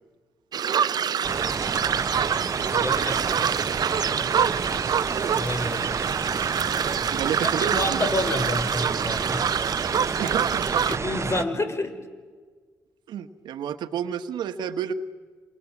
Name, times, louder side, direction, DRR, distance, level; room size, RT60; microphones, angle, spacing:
sound 1, 0.5-11.0, right 8 dB, 60° right, 0.8 m, -26 dB
sound 2, 1.2-11.4, right 4 dB, 40° right, 1.1 m, -30 dB
voice 1, 2.7-3.3 5.3-5.9 7.6-9.5 10.1-10.3 10.9-12.0, left 2 dB, 40° left, 6 dB, 5.3 m, -29 dB
voice 2, 7.1-8.0 10.2-11.0 13.1-14.9, right 8 dB, 75° right, 10 dB, 1.5 m, -30 dB
28.5 x 27.5 x 7.5 m, 1.5 s
supercardioid pair, 45°, 8 cm